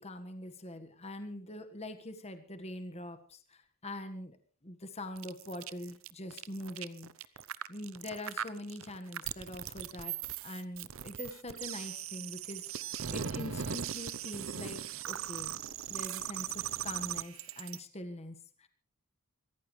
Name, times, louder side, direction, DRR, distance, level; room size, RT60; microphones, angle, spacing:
voice 1, 0.0-4.4 4.6-7.1 7.7-10.2 10.4-15.6 15.9-18.7, left 1 dB, 30° left, 8 dB, 1.5 m, -43 dB
sound 1, 5.2-17.8, right 9 dB, 60° right, 0.7 m, -39 dB
26.5 x 14.5 x 3.2 m, 0.42 s
head